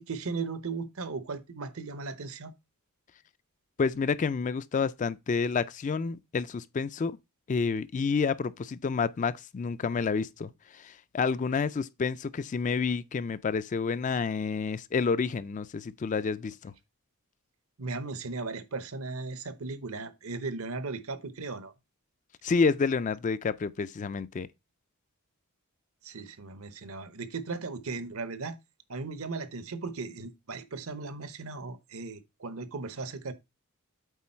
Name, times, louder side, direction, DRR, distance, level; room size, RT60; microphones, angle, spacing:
voice 1, 0.0-2.5 17.8-21.7 26.0-28.6 28.9-33.3, right 4 dB, 70° right, 0.9 m, -37 dB
voice 2, 3.8-7.2 7.5-16.7 22.4-24.5, left 5 dB, 35° left, 0.3 m, -29 dB
8.3 x 4.0 x 4.3 m
head